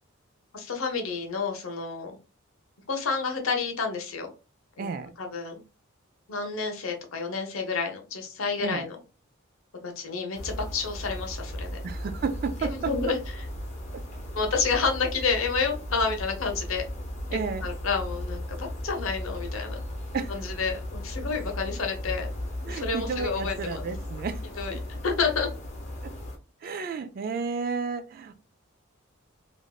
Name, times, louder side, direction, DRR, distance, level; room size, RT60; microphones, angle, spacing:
voice 1, 0.5-2.2 2.9-4.3 4.8-4.9 5.2-5.6 6.3-9.0 9.8-11.8 12.6-13.5 14.3-16.8 17.6-19.8 20.3-22.3 22.7-23.8 24.6-25.5, left 5 dB, 75° left, 0.8 m, -29 dB
voice 2, 4.8-5.1 8.6-8.9 11.8-13.1 13.9-14.0 17.3-17.7 20.1-20.3 22.6-24.4 24.7-24.8 26.0-26.1 26.6-28.3, right 5 dB, 45° right, 0.3 m, -32 dB
sound 1, 10.3-26.4, left 1 dB, 35° left, 0.8 m, -36 dB
3.4 x 2.5 x 2.3 m
head